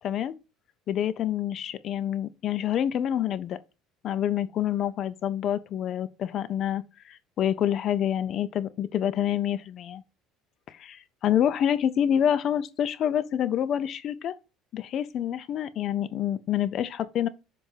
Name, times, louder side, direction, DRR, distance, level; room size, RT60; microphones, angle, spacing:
voice 1, 0.0-0.4 0.9-3.6 4.0-10.0 10.7-14.4 14.7-17.3, left 10 dB, 40° left, 0.5 m, -27 dB
7.3 x 2.5 x 5.6 m
cardioid pair, 150°, 0 cm